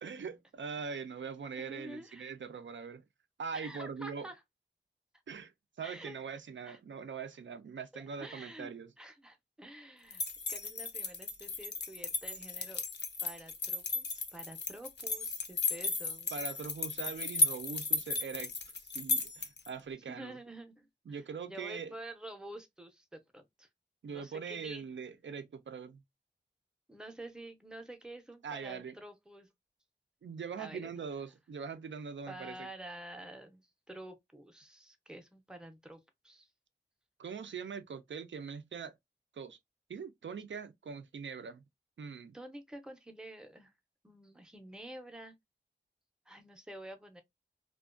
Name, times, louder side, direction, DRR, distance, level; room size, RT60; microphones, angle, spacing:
voice 1, 0.0-3.0 3.4-4.3 5.3-5.5 5.8-8.9 16.3-18.5 18.8-20.4 21.1-21.9 24.0-26.0 28.4-28.9 30.2-32.7 37.2-38.9 39.3-39.6 39.9-41.6 42.0-42.3, right 6 dB, 80° right, 0.4 m, -42 dB
voice 2, 1.6-2.3 3.5-4.4 5.8-6.2 6.7-6.8 7.9-10.2 10.5-12.8 13.2-16.3 20.1-21.2 21.5-23.7 24.1-24.9 26.9-29.5 30.6-30.9 32.3-36.5 42.3-43.7 44.0-45.3 46.3-47.2, right 1 dB, 5° right, 0.5 m, -49 dB
sound 1, 10.1-19.7, left 3 dB, 65° left, 0.5 m, -35 dB
2.4 x 2.2 x 2.4 m
wide cardioid pair, 70°, 19 cm